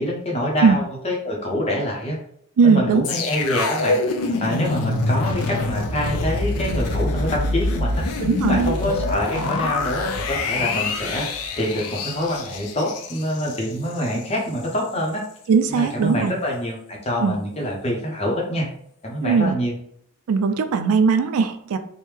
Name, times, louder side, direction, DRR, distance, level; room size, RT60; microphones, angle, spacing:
voice 1, 0.0-2.2 2.6-4.0 4.3-8.0 8.5-11.3 11.6-15.2 15.7-18.7 19.0-19.8, equal, 25° left, -1 dB, 0.6 m, -26 dB
voice 2, 2.6-3.0 8.2-8.7 15.5-16.3 17.2-17.4 19.2-19.6 20.3-21.8, right 5 dB, 80° right, 9 dB, 0.3 m, -19 dB
sound 1, 3.0-14.2 14.6-14.7, left 3 dB, 90° left, 0.4 m, -25 dB
3.1 x 2.1 x 3.3 m, 0.68 s
head